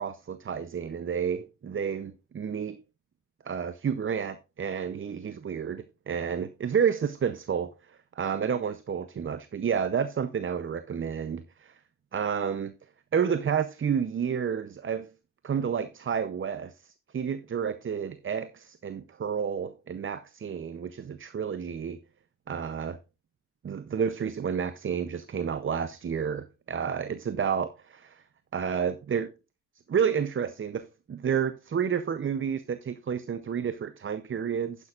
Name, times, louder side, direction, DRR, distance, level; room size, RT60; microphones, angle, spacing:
voice 1, 0.0-2.8 3.4-11.7 12.1-12.7 13.1-15.1 15.4-22.0 22.5-23.0 23.6-28.2 28.5-29.3 29.9-34.9, right 7 dB, 30° right, 0.6 m, -30 dB
10.5 x 9.9 x 2.4 m
cardioid pair, 85°, 45 cm